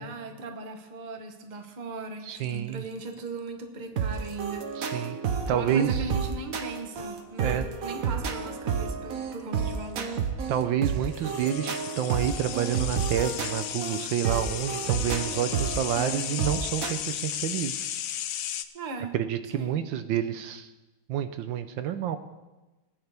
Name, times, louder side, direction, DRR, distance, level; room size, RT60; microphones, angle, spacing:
voice 1, 0.0-5.2 5.5-10.2 18.7-19.2 19.5-19.8, right 3 dB, 30° right, 5 dB, 1.0 m, -39 dB
voice 2, 2.3-2.8 4.8-5.2 5.5-6.0 7.4-7.6 10.5-17.9 19.1-20.7 21.1-22.2, right 10 dB, 80° right, 10 dB, 1.4 m, -29 dB
sound 1, 2.4-3.1 4.1-4.5 7.0-7.2 9.4-9.5 9.7-9.9 11.1-18.7, left 11 dB, 70° left, 1.2 m, -35 dB
sound 2, 4.0-16.9, right 6 dB, 55° right, 1.1 m, -31 dB
20.0 x 9.6 x 3.4 m, 1.1 s
omnidirectional pair, 2.1 m